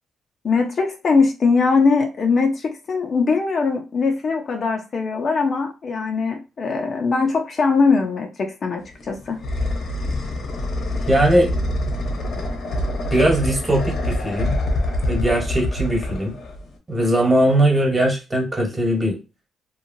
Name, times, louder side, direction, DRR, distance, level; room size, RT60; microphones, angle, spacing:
voice 1, 0.4-9.4, left 4 dB, 45° left, 3 dB, 0.6 m, -21 dB
sound 1, 8.8-16.8, left 1 dB, 65° left, 1.0 m, -25 dB
voice 2, 11.1-11.5 13.1-14.5 15.1-16.3 16.9-19.2, right 1 dB, 20° right, 1 dB, 1.3 m, -19 dB
3.0 x 2.4 x 2.7 m, 0.29 s
cardioid pair, 90°, 0 cm